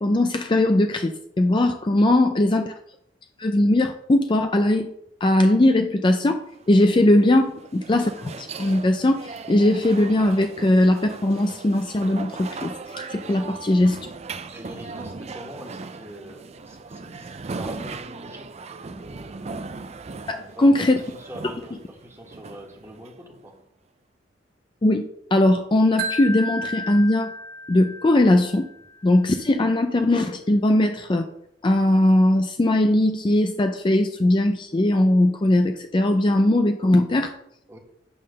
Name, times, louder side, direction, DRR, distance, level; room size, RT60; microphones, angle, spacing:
voice 1, 0.0-2.7 3.4-4.9 5.2-14.1 20.3-21.0 24.8-25.0 25.3-27.3 27.7-28.7 29.0-31.3 31.6-37.4, left 1 dB, 25° left, 7 dB, 0.4 m, -20 dB
voice 2, 1.9-2.4 7.0-7.1 13.2-13.6 14.5-18.5 18.9-19.7 20.4-23.5 37.7-37.8, equal, 15° right, 1 dB, 1.5 m, -43 dB
sound 1, 6.5-23.5, right 4 dB, 35° right, 0.4 m, -38 dB
Wind chime, 26.0-29.1, right 1 dB, 55° right, 1.9 m, -33 dB
8.6 x 3.7 x 6.4 m, 0.75 s
head